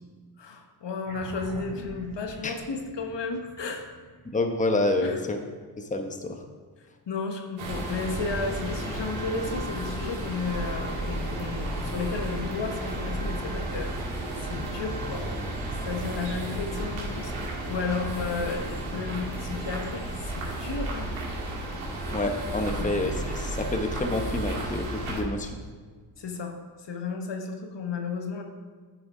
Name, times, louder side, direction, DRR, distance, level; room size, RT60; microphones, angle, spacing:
voice 1, 0.4-3.9 5.0-5.2 7.1-14.0 14.4-15.3 15.8-21.1 22.8-23.0 26.2-28.4, left 4 dB, 55° left, 4 dB, 1.3 m, -33 dB
sound 1, 1.0-5.8, right 1 dB, 60° right, 2.7 m, -45 dB
voice 2, 4.2-5.4 5.8-6.4 22.1-25.6, left 2 dB, 15° left, 4 dB, 1.0 m, -28 dB
sound 2, 7.6-25.2, right 1 dB, 80° right, 2.1 m, -33 dB
9.9 x 4.8 x 4.9 m, 1.5 s
supercardioid pair, 55°, 50 cm